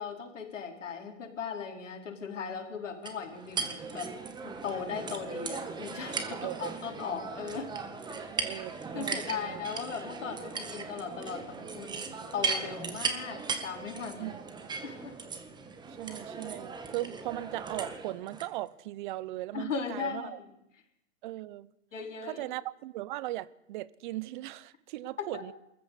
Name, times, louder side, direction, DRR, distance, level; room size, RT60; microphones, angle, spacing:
voice 1, 0.0-4.1 4.4-7.7 8.5-8.6 8.9-12.0 12.3-14.3 14.8-15.2 19.5-20.3 21.9-22.4 25.2-25.4, left 6 dB, 85° left, 4.7 m, -38 dB
sound 1, 3.1-18.5, right 4 dB, 10° right, 1.7 m, -38 dB
voice 2, 6.3-6.7 8.3-9.6 14.2-14.3 16.0-20.4 21.2-21.7 22.3-25.5, right 16 dB, 40° right, 0.9 m, -38 dB
22.5 x 14.5 x 8.4 m
hypercardioid pair, 140°, 36 cm